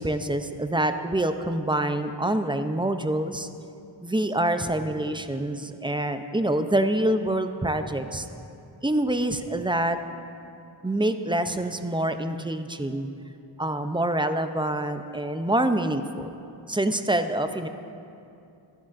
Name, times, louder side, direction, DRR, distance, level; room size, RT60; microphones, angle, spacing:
voice 1, 0.0-3.5 4.0-8.3 8.8-10.0 10.8-13.1 13.6-16.3 16.7-17.7, right 1 dB, 10° right, 8 dB, 0.5 m, -26 dB
13.5 x 11.5 x 2.5 m, 2.6 s
cardioid pair, 50°, 48 cm